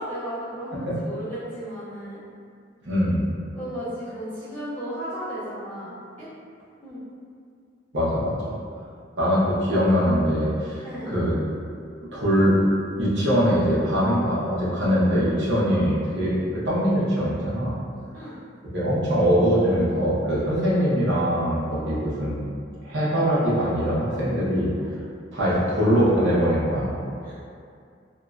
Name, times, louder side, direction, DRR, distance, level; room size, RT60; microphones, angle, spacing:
voice 1, 0.0-2.2 3.5-6.3 6.8-7.0 10.8-11.1 18.1-18.3 27.2-27.3, equal, 10° left, -16 dB, 1.5 m, -34 dB
voice 2, 2.8-3.3 7.9-8.5 9.2-10.8 11.0-11.3 12.1-12.5 13.0-17.7 18.7-22.4 22.8-24.9 25.3-27.0, equal, 65° right, -10 dB, 0.9 m, -22 dB
2.9 x 2.7 x 2.4 m, 2.3 s
head